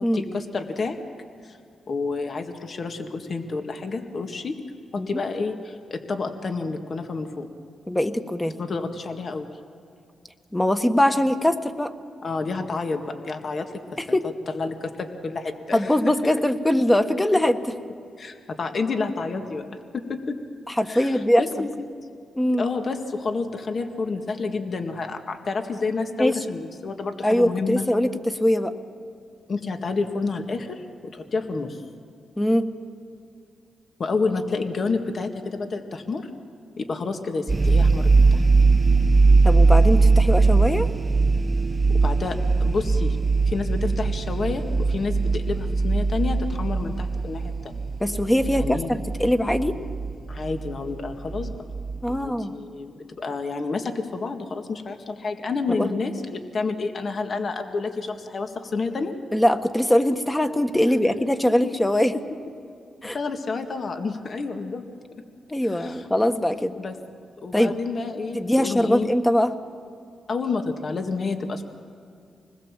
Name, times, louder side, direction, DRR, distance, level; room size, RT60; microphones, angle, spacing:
voice 1, 0.1-1.0 1.4-1.6 1.9-4.6 4.9-7.5 8.6-9.5 12.2-14.0 14.5-16.3 17.3-17.4 18.2-20.4 20.9-21.9 22.6-27.9 29.5-30.9 31.1-31.8 34.0-36.3 36.8-38.4 41.9-43.2 43.5-47.8 48.6-49.0 50.3-51.5 52.1-59.1 61.6-61.7 62.1-62.2 63.0-64.9 65.6-66.1 66.8-67.0 67.4-69.1 70.3-71.6, left 4 dB, 55° left, 5 dB, 1.9 m, -29 dB
voice 2, 7.9-8.6 10.5-11.9 14.0-14.3 15.7-17.6 20.7-21.4 22.4-22.7 26.2-26.4 27.2-28.7 32.4-32.6 39.4-40.9 48.0-49.8 52.0-52.5 55.8-55.9 59.3-62.1 63.0-63.2 65.5-66.8 67.5-67.7 68.3-69.5, left 1 dB, 10° left, 7 dB, 1.5 m, -22 dB
sound 1, 37.5-52.2, right 3 dB, 25° right, 0.9 m, -20 dB
26.5 x 20.5 x 7.5 m, 2.3 s
cardioid pair, 70°, 0 cm